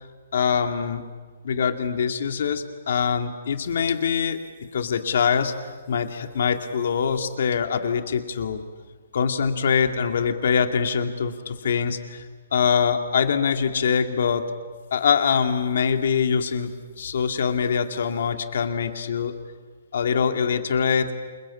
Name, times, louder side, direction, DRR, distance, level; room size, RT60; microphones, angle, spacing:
voice 1, 0.3-1.0 1.4-4.4 4.7-5.5 5.9-8.6 9.1-12.2 12.5-14.4 14.9-16.7 17.0-19.3 19.9-21.1, left 6 dB, 55° left, 6 dB, 2.2 m, -23 dB
28.0 x 22.0 x 8.5 m, 1.5 s
hypercardioid pair, 170°, 0 cm